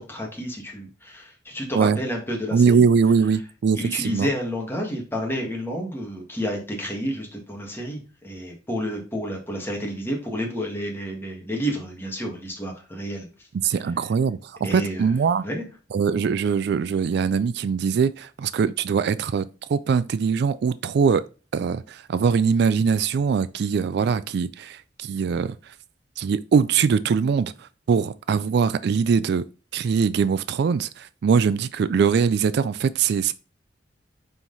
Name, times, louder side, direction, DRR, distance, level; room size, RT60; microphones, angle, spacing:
voice 1, 0.0-2.8 3.7-13.8 14.6-15.1 15.4-15.6, equal, 15° left, 1.8 m, -30 dB
voice 2, 2.5-4.3 13.6-15.4 15.9-21.2 21.5-25.5 26.2-27.5 27.9-29.4 29.7-33.3, right 6 dB, 65° right, 0.3 m, -22 dB
5.7 x 4.6 x 4.0 m
head